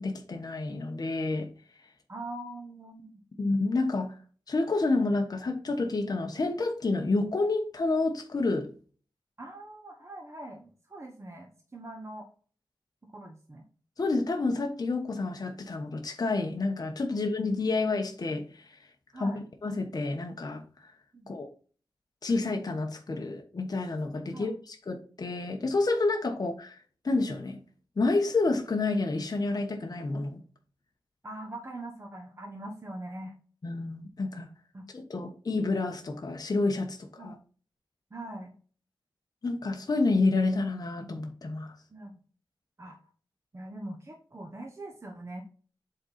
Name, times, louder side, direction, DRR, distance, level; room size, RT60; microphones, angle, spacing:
voice 1, 0.0-1.5 3.4-4.1 4.5-8.7 14.0-18.8 19.1-19.3 19.6-20.6 21.3-21.5 22.2-26.8 27.0-27.6 28.0-30.4 33.6-34.5 34.9-37.3 39.4-41.7, left 3 dB, 50° left, 3 dB, 1.0 m, -29 dB
voice 2, 2.1-3.2 9.4-12.3 13.0-13.7 19.1-19.4 21.1-21.3 24.3-24.5 31.2-33.3 34.7-34.8 37.2-37.4 38.1-38.5 41.9-42.2 42.8-43.0 43.5-45.4, right 1 dB, 35° right, 0 dB, 1.2 m, -42 dB
8.0 x 3.8 x 4.0 m, 0.41 s
wide cardioid pair, 100°, 8 cm